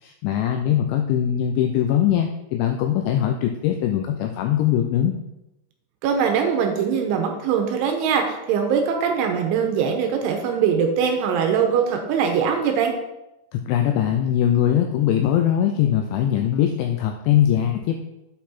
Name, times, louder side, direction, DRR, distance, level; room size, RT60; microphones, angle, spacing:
voice 1, 0.0-5.1 13.5-17.9, left 10 dB, 85° left, 4 dB, 2.6 m, -21 dB
voice 2, 6.0-12.9, right 7 dB, 80° right, 4 dB, 3.1 m, -22 dB
8.5 x 5.9 x 4.2 m, 0.93 s
omnidirectional pair, 5.9 m